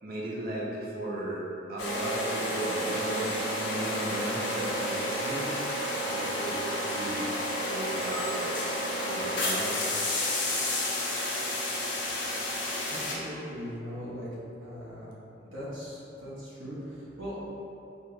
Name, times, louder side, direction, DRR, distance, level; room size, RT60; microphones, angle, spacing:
voice 1, 0.0-1.4 1.7-5.5 6.0-6.6 6.8-8.5 9.0-9.7, right 1 dB, 50° right, -4 dB, 0.6 m, -36 dB
sound 1, 1.8-13.1, left 1 dB, 65° left, 0.7 m, -31 dB
voice 2, 12.9-14.3 14.6-15.1 15.5-17.6, equal, 85° right, -9 dB, 1.2 m, -39 dB
4.4 x 2.4 x 3.1 m, 2.8 s
head